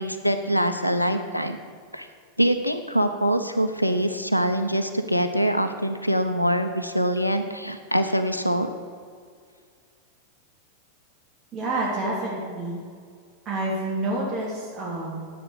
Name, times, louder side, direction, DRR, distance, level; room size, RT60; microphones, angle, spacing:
voice 1, 0.0-1.6 1.9-2.1 2.4-8.7, equal, 90° left, 8 dB, 0.7 m, -24 dB
voice 2, 11.5-12.8 13.4-15.3, right 2 dB, 30° right, -4 dB, 3.0 m, -28 dB
10.0 x 8.5 x 8.2 m, 2.1 s
figure-of-eight pair, 90°, 0 cm